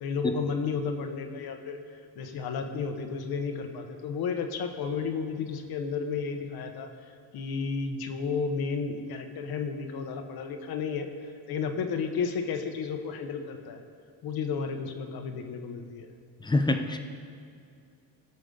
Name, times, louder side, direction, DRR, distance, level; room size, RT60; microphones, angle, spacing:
voice 1, 0.0-1.8 2.1-6.9 7.3-11.1 11.5-13.8 14.2-16.1, left 5 dB, 60° left, 6 dB, 1.0 m, -32 dB
voice 2, 16.4-17.0, left 2 dB, 10° left, 6 dB, 0.6 m, -25 dB
17.5 x 6.8 x 3.8 m, 2.4 s
cardioid pair, 135°, 41 cm